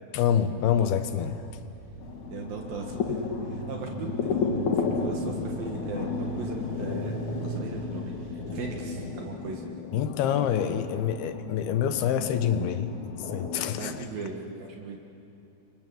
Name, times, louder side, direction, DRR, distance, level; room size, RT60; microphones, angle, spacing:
voice 1, 0.1-1.4 9.9-12.9 13.3-13.9, left 9 dB, 80° left, 9 dB, 3.1 m, -26 dB
sound 1, 0.6-9.2, right 3 dB, 90° right, 0.8 m, -40 dB
sound 2, 2.0-14.0, left 5 dB, 60° left, 2.7 m, -33 dB
voice 2, 2.3-7.2 7.4-9.7 13.8-15.0, right 5 dB, 70° right, 1 dB, 3.4 m, -39 dB
29.0 x 25.5 x 7.8 m, 2.7 s
omnidirectional pair, 4.4 m